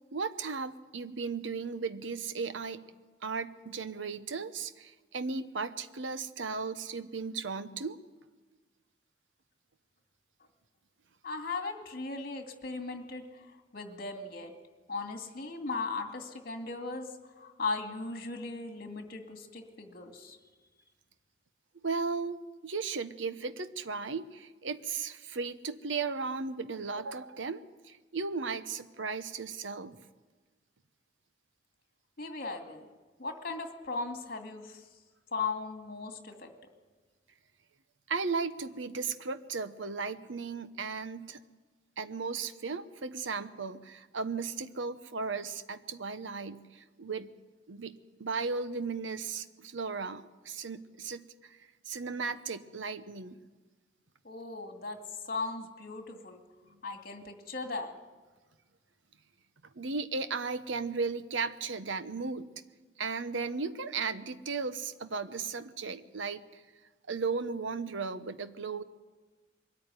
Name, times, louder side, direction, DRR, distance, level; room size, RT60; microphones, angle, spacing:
voice 1, 0.1-2.8 3.2-8.0 21.8-30.0 38.1-41.4 42.0-47.3 47.7-51.6 51.9-53.4 59.7-62.5 63.0-66.6 67.1-68.8, right 4 dB, 85° right, 12 dB, 1.0 m, -36 dB
voice 2, 11.2-13.2 13.7-14.5 14.9-17.1 17.4-20.4 32.2-32.9 33.2-34.8 35.3-36.5 54.2-56.4 56.8-57.9, left 3 dB, 55° left, 5 dB, 2.3 m, -37 dB
22.5 x 13.5 x 9.6 m, 1.3 s
head